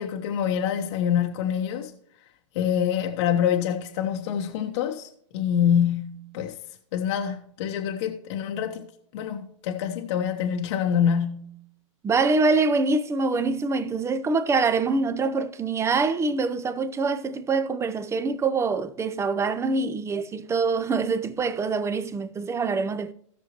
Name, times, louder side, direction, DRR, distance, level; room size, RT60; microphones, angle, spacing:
voice 1, 0.0-1.9 2.5-5.1 5.3-6.6 6.9-8.9 9.1-11.5, left 8 dB, 60° left, 1.0 m, -26 dB
voice 2, 12.0-23.1, right 4 dB, 15° right, 0.7 m, -25 dB
17.0 x 6.4 x 2.9 m
hypercardioid pair, 110°, 17 cm